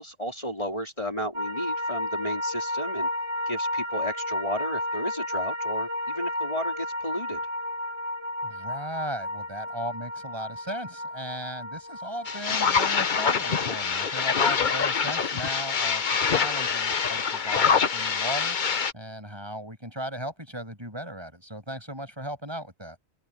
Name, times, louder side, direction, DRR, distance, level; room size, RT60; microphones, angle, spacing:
voice 1, 0.0-3.1 3.5-7.4, equal, 30° left, 4.5 m, -33 dB
sound 1, 1.3-17.7 18.0-18.1, left 1 dB, 80° right, 4.3 m, -33 dB
voice 2, 8.4-18.6 18.9-23.0, right 1 dB, 20° right, 8.0 m, -37 dB
sound 2, 12.2-18.9, left 6 dB, 45° left, 1.0 m, -25 dB
omnidirectional pair, 1.2 m